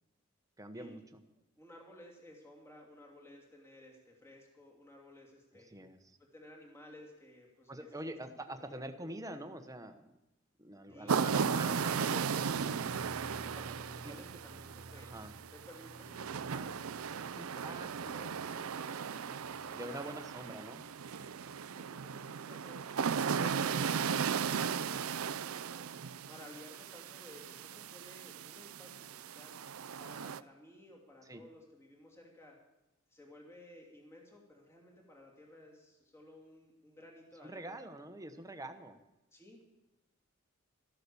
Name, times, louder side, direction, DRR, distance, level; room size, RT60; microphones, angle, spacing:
voice 1, 0.6-1.0 5.5-6.2 7.7-10.1 10.6-12.8 14.0-14.2 15.0-15.3 17.2-18.5 19.7-20.8 31.2-31.4 37.4-39.0, right 1 dB, 15° right, 8 dB, 1.0 m, -45 dB
voice 2, 1.6-5.7 6.2-8.0 8.5-8.8 10.9-11.5 13.2-15.1 15.5-17.9 18.5-20.7 21.1-22.8 23.3-25.9 26.3-29.5 30.0-32.5 33.1-37.8 39.3-39.6, left 1 dB, 15° left, -1 dB, 2.8 m, -56 dB
sound 1, 10.9-21.7 22.0-22.1, right 2 dB, 40° right, 0.6 m, -53 dB
sound 2, 11.1-30.4, right 6 dB, 90° right, 0.5 m, -36 dB
13.5 x 12.5 x 7.0 m, 0.97 s
head